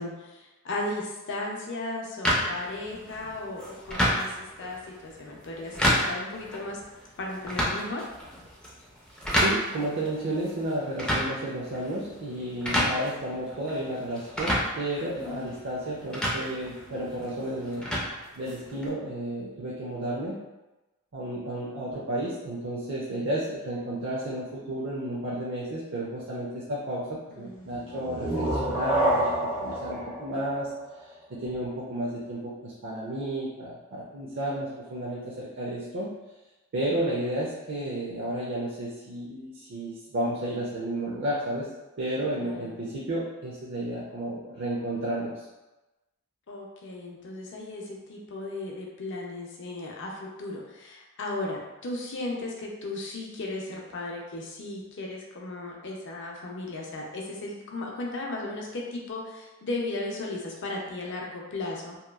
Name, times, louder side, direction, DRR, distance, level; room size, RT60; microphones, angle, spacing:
voice 1, 0.0-4.3 4.6-6.8 7.2-8.0 27.3-28.0 42.4-42.9 46.5-62.0, left 2 dB, 55° left, -1 dB, 0.5 m, -36 dB
sound 1, 2.2-18.9, equal, 5° left, 0.4 m, -31 dB
voice 2, 9.3-17.9 18.4-20.4 21.1-29.3 29.6-30.8 31.4-36.1 36.7-41.7 42.0-45.3, right 1 dB, 55° right, -5 dB, 0.5 m, -32 dB
sound 2, 27.9-31.5, right 1 dB, 70° right, 0.9 m, -28 dB
2.9 x 2.2 x 2.3 m, 1.1 s
head